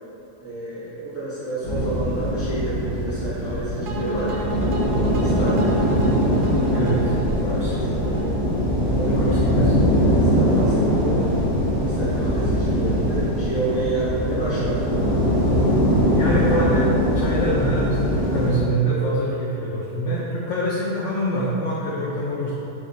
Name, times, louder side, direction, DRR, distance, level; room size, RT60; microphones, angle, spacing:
voice 1, 0.4-4.5 5.1-6.7 7.5-8.2 8.8-9.7 10.0-11.3 11.8-14.9, right 2 dB, 10° right, -11 dB, 0.8 m, -30 dB
sound 1, 1.6-18.5, equal, 20° left, 0.7 m, -21 dB
sound 2, 3.9-9.0, right 2 dB, 70° right, 0.8 m, -32 dB
voice 2, 6.7-8.1 9.1-9.7 16.1-22.5, right 1 dB, 70° left, -6 dB, 0.7 m, -25 dB
3.5 x 3.4 x 4.1 m, 2.9 s
omnidirectional pair, 1.8 m